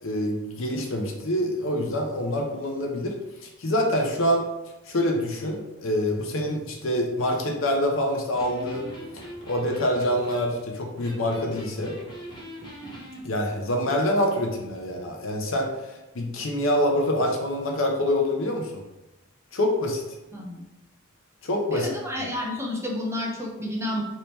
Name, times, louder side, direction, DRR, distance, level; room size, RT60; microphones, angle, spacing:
voice 1, 0.0-3.2 3.4-4.4 4.9-8.9 9.5-12.0 13.2-15.7 16.1-18.8 19.5-20.0 21.4-21.9, left 1 dB, 75° left, 2 dB, 0.6 m, -26 dB
Electric guitar, 8.3-13.2, equal, 25° left, 0.7 m, -42 dB
voice 2, 20.3-20.6 21.7-24.0, left 1 dB, 15° right, -1 dB, 0.6 m, -30 dB
3.4 x 2.8 x 2.9 m, 0.99 s
head